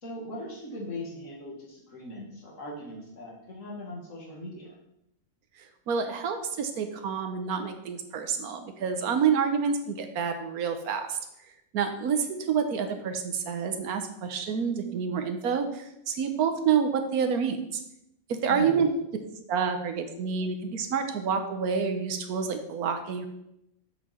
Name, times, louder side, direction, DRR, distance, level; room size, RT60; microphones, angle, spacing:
voice 1, 0.0-4.7 18.5-18.9, left 1 dB, 60° left, -3 dB, 2.4 m, -39 dB
voice 2, 5.6-11.2 11.7-17.8 18.3-18.9 19.5-23.3, right 6 dB, 85° right, 6 dB, 1.4 m, -28 dB
7.4 x 6.2 x 4.4 m, 0.80 s
omnidirectional pair, 1.5 m